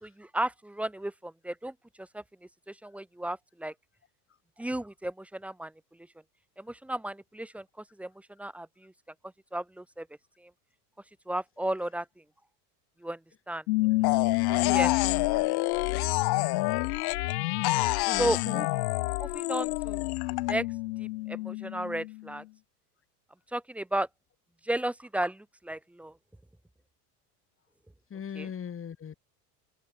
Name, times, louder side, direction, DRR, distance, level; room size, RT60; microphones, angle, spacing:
voice 1, 0.0-2.2 2.7-3.7 4.6-5.7 6.6-7.6 8.0-8.1 8.4-8.9 9.5-10.1 11.3-12.0 13.0-13.2 13.5-13.6 14.5-14.9 18.2-18.7 19.2-20.0 20.5-20.7 21.0-22.4 23.5-24.1 24.7-26.1 28.3-28.5, right 1 dB, 5° right, 0.7 m, -34 dB
sound 1, 13.7-22.4, left 22 dB, 80° left, 1.0 m, -30 dB
sound 2, 14.0-17.3 17.6-20.5, left 20 dB, 50° left, 4.3 m, -29 dB
voice 2, 14.4-15.3 18.1-18.7 28.1-29.2, left 8 dB, 25° left, 6.5 m, -38 dB
supercardioid pair, 120°, 48 cm